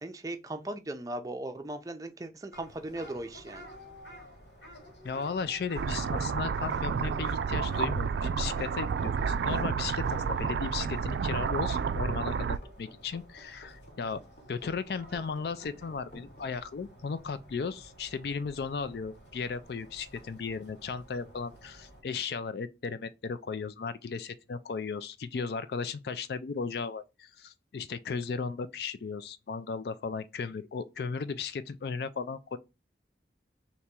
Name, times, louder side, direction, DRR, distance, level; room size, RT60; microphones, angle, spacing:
voice 1, 0.0-3.7, right 1 dB, 20° right, 0.4 m, -38 dB
sound 1, 2.5-22.0, equal, 85° left, 1.9 m, -51 dB
voice 2, 5.0-14.2 14.5-32.6, left 5 dB, 65° left, 0.4 m, -36 dB
sound 2, 5.8-12.6, right 6 dB, 80° right, 0.3 m, -30 dB
sound 3, 10.6-16.5, left 1 dB, 50° left, 0.9 m, -54 dB
3.5 x 2.9 x 4.3 m
head